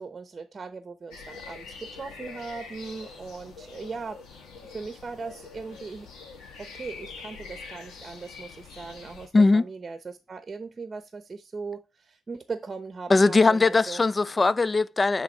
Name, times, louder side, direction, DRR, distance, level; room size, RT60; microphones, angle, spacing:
voice 1, 0.0-4.2 4.7-6.1 6.6-14.0, right 4 dB, 30° right, 0.8 m, -39 dB
sound 1, 1.1-9.3, left 4 dB, 85° left, 2.1 m, -44 dB
voice 2, 9.3-9.6 13.1-15.2, left 3 dB, 25° left, 0.4 m, -20 dB
9.5 x 3.6 x 4.5 m
cardioid pair, 90°, 0 cm